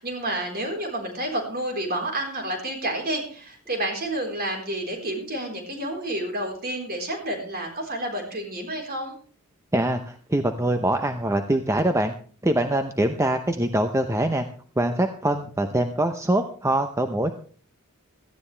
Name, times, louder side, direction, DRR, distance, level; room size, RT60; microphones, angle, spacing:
voice 1, 0.0-9.1, right 1 dB, 45° right, 2 dB, 4.3 m, -30 dB
voice 2, 9.7-12.1 12.4-14.5 14.8-17.3, right 1 dB, 15° right, 7 dB, 0.7 m, -23 dB
17.0 x 14.0 x 3.4 m, 0.44 s
head